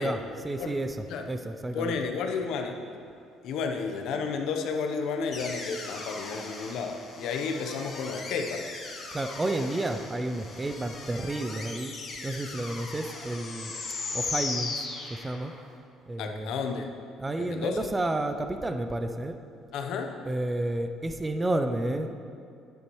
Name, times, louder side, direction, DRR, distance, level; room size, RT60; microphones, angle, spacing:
voice 1, 0.0-2.0 9.1-11.9 12.2-13.7 14.1-14.8 15.1-15.5 16.1-16.5 17.2-19.4 20.3-22.1, right 1 dB, 10° right, 7 dB, 0.4 m, -31 dB
voice 2, 1.7-2.7 3.4-8.6 16.2-16.9 17.4-17.9 19.7-20.1, left 5 dB, 65° left, 4 dB, 0.8 m, -32 dB
sound 1, 5.3-15.6, left 3 dB, 35° left, 1.2 m, -38 dB
10.0 x 9.6 x 3.1 m, 2.4 s
cardioid pair, 165°, 0 cm